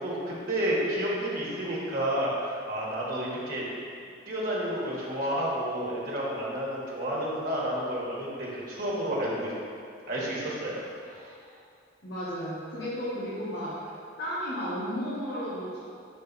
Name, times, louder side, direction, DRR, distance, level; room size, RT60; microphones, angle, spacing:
voice 1, 0.0-3.6 4.3-9.5 10.1-10.8 11.1-11.3, right 1 dB, 50° right, -5 dB, 1.4 m, -30 dB
voice 2, 12.0-13.8 14.2-15.8, equal, 65° left, -12 dB, 1.5 m, -33 dB
5.7 x 5.1 x 4.0 m, 2.4 s
head